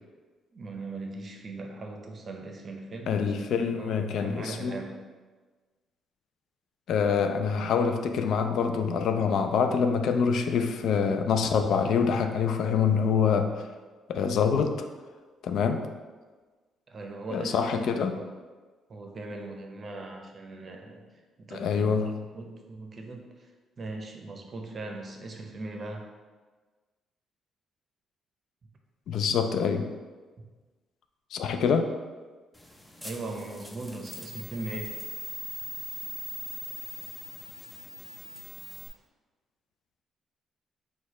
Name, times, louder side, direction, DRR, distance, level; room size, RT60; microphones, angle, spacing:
voice 1, 0.5-5.1 16.9-18.3 18.9-21.0 21.4-22.0 22.3-23.5 23.8-26.1 30.4-30.5 32.9-35.0, right 2 dB, 45° right, 3 dB, 0.6 m, -39 dB
voice 2, 3.1-4.8 6.9-13.6 14.1-14.9 15.4-15.9 17.3-18.2 21.5-22.1 29.1-29.9 31.3-31.9, left 6 dB, 75° left, 6 dB, 0.3 m, -25 dB
sound 1, 32.5-38.9, left 1 dB, 10° left, 0.5 m, -41 dB
4.6 x 2.2 x 4.1 m, 1.4 s
cardioid pair, 85°, 0 cm